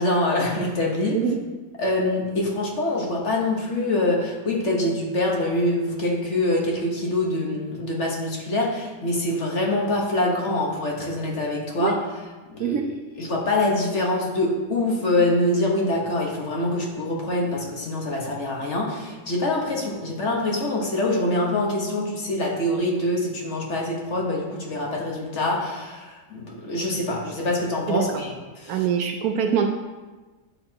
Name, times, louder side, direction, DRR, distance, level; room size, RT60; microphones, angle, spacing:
voice 1, 0.0-1.2 1.8-12.0 12.5-12.8 13.2-28.9, left 1 dB, 45° left, -1 dB, 1.4 m, -25 dB
voice 2, 28.7-29.7, right 8 dB, 70° right, 5 dB, 1.0 m, -23 dB
8.6 x 6.7 x 2.8 m, 1.2 s
omnidirectional pair, 1.8 m